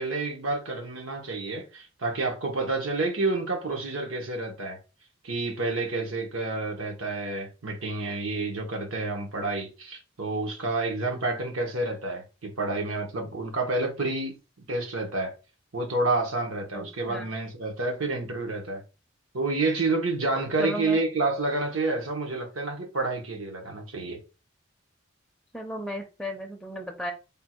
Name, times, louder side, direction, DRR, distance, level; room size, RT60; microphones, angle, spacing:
voice 1, 0.0-4.8 5.2-14.4 14.7-15.3 15.7-18.8 19.3-24.2, right 2 dB, 85° right, 1.1 m, -29 dB
voice 2, 16.7-17.3 20.6-21.0 25.5-27.1, equal, ahead, 0.4 m, -35 dB
3.5 x 2.3 x 4.4 m
head